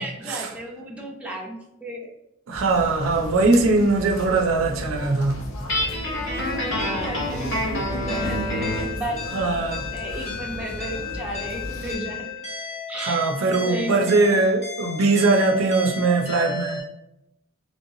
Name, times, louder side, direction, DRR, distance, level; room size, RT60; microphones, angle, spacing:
voice 1, 0.0-2.1 6.2-9.5 9.9-12.3 12.9-14.4, right 1 dB, 5° right, 0.5 m, -34 dB
sound 1, 2.5-12.0, equal, 85° left, 0.6 m, -35 dB
voice 2, 2.5-5.4 9.3-9.8 12.9-16.8, right 3 dB, 70° right, 0.5 m, -21 dB
Guitar, 5.7-8.9, left 1 dB, 60° left, 1.1 m, -27 dB
sound 2, 8.1-16.8, left 4 dB, 35° left, 0.9 m, -34 dB
3.1 x 2.9 x 2.6 m
head